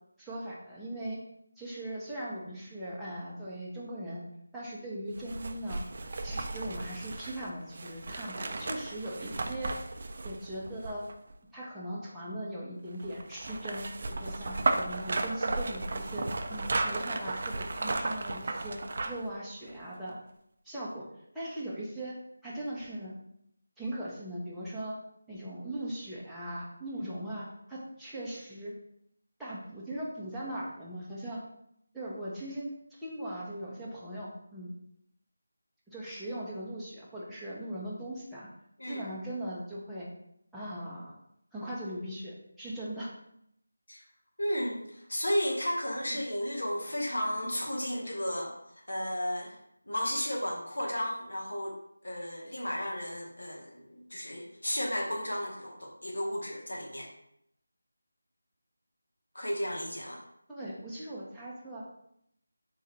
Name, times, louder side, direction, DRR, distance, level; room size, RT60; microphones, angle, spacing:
voice 1, 0.2-1.2 1.6-4.2 4.5-5.8 6.2-9.7 10.2-11.0 11.5-18.8 19.1-20.2 20.6-21.0 21.3-22.1 22.4-23.1 23.8-25.0 25.3-28.7 29.4-31.4 31.9-34.7 35.9-38.5 38.9-40.1 40.5-41.1 41.5-43.1 46.1-46.2 60.5-61.8, right 1 dB, ahead, -10 dB, 0.7 m, -39 dB
sound 1, 5.2-11.3 13.0-19.3 19.7-19.8, right 2 dB, 40° right, 0.4 m, -34 dB
voice 2, 44.4-48.5 48.9-49.6 49.8-51.7 52.0-57.1 59.3-60.2, equal, 85° left, -1 dB, 1.2 m, -33 dB
3.8 x 2.4 x 4.2 m, 0.75 s
figure-of-eight pair, 170°, 0 cm